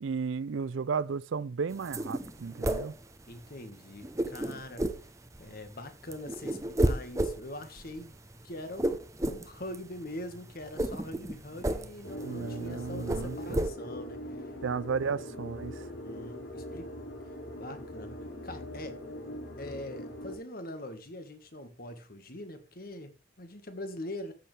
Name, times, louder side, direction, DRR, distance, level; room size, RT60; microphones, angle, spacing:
voice 1, 0.0-3.0 12.2-13.7 14.6-15.9, right 5 dB, 80° right, 0.5 m, -34 dB
sound 1, 1.7-3.6 4.0-5.7 6.0-13.7, right 1 dB, 15° right, 0.8 m, -32 dB
voice 2, 3.3-4.9 5.4-8.2 8.4-14.5 15.7-16.9 17.6-19.0 19.6-24.3, left 1 dB, 50° left, 1.6 m, -43 dB
sound 2, 12.0-20.4, left 1 dB, 80° left, 3.7 m, -42 dB
14.5 x 6.7 x 3.4 m
head